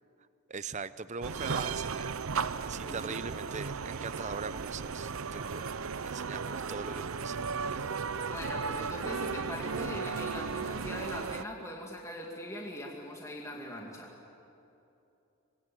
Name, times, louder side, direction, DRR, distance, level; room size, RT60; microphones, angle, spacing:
voice 1, 0.5-2.1 2.6-8.0, right 5 dB, 35° right, 14 dB, 0.7 m, -41 dB
sound 1, 1.2-11.4, right 5 dB, 80° right, 0.7 m, -35 dB
voice 2, 2.7-3.4 8.3-14.1, left 1 dB, 15° left, -1 dB, 2.3 m, -41 dB
26.0 x 21.0 x 9.3 m, 2.8 s
head